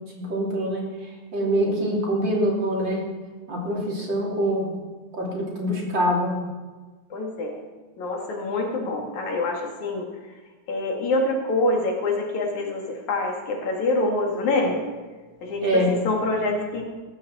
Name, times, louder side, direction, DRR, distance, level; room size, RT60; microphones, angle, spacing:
voice 1, 0.1-0.9 1.3-3.0 3.5-4.7 5.1-6.4 15.6-15.9, equal, 40° right, -3 dB, 3.7 m, -24 dB
voice 2, 1.4-1.7 7.1-7.6 8.0-10.1 10.7-14.8 15.4-16.8, left 2 dB, 75° left, 0 dB, 3.7 m, -26 dB
18.5 x 14.0 x 4.3 m, 1.3 s
omnidirectional pair, 3.3 m